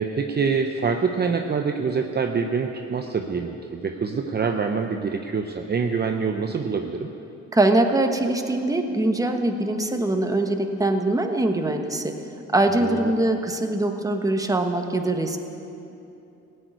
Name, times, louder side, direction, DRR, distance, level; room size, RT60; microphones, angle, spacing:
voice 1, 0.0-7.1 12.8-13.1, right 5 dB, 35° right, 4 dB, 0.7 m, -25 dB
voice 2, 7.5-12.1 12.5-15.4, right 2 dB, 10° right, 4 dB, 1.1 m, -22 dB
15.5 x 6.6 x 9.3 m, 2.8 s
cardioid pair, 90°, 30 cm